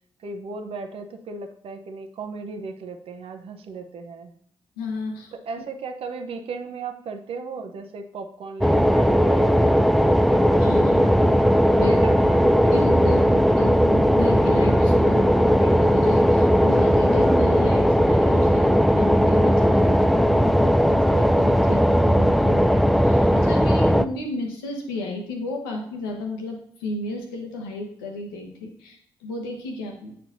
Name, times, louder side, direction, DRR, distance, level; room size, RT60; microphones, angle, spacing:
voice 1, 0.2-4.3 5.5-13.4, right 4 dB, 55° right, 6 dB, 0.7 m, -36 dB
voice 2, 4.8-5.3 10.6-11.1 11.4-12.0 12.7-30.1, left 2 dB, 85° left, 2 dB, 0.9 m, -33 dB
sound 1, 8.6-24.1, equal, ahead, 0.3 m, -18 dB
8.5 x 4.4 x 2.6 m, 0.67 s
hypercardioid pair, 40°, 11 cm